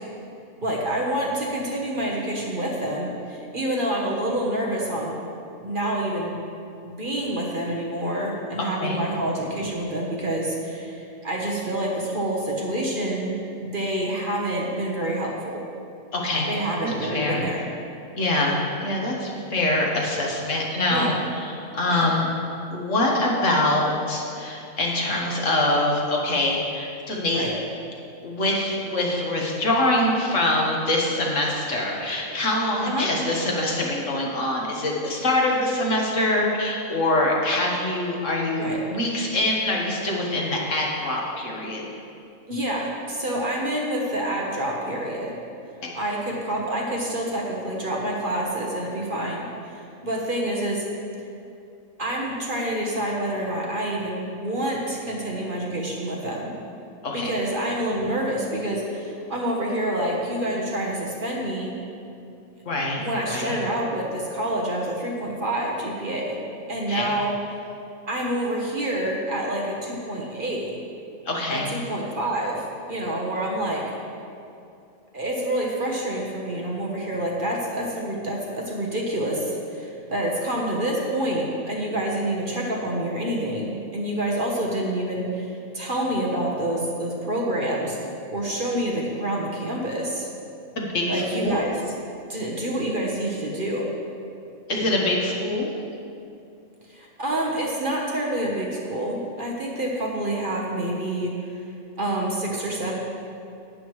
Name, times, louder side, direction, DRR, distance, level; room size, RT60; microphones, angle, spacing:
voice 1, 0.6-5.1 5.6-6.3 6.8-13.3 13.6-15.6 16.5-17.7 20.9-21.2 21.9-22.1 27.3-27.5 32.9-33.1 38.6-38.8 42.5-45.3 45.9-50.9 52.0-56.5 57.1-61.7 63.0-66.4 66.7-67.3 68.1-70.7 71.5-73.8 75.1-88.0 88.3-90.3 91.1-91.8 92.3-93.9 96.9-101.3 102.0-102.9, right 1 dB, 40° right, -2 dB, 1.2 m, -27 dB
voice 2, 8.6-9.0 16.1-16.5 16.8-17.4 18.2-22.3 22.7-27.4 28.2-41.8 57.0-57.3 62.7-63.0 63.3-63.6 66.9-67.1 71.3-71.7 90.8-91.6 94.7-95.7, left 1 dB, 60° left, -2 dB, 1.6 m, -24 dB
11.5 x 9.1 x 3.1 m, 2.6 s
omnidirectional pair, 1.5 m